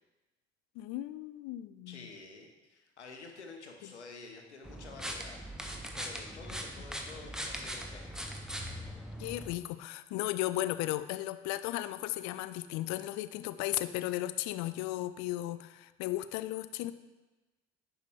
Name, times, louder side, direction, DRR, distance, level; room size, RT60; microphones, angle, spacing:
voice 1, 0.8-2.1 9.2-16.9, left 15 dB, 55° left, 14 dB, 0.5 m, -35 dB
voice 2, 1.9-5.4 5.7-8.3, left 4 dB, 85° left, 3 dB, 0.9 m, -50 dB
sound 1, 4.6-9.5, equal, ahead, 1.0 m, -41 dB
9.5 x 5.7 x 3.6 m, 1.1 s
figure-of-eight pair, 50°, 34 cm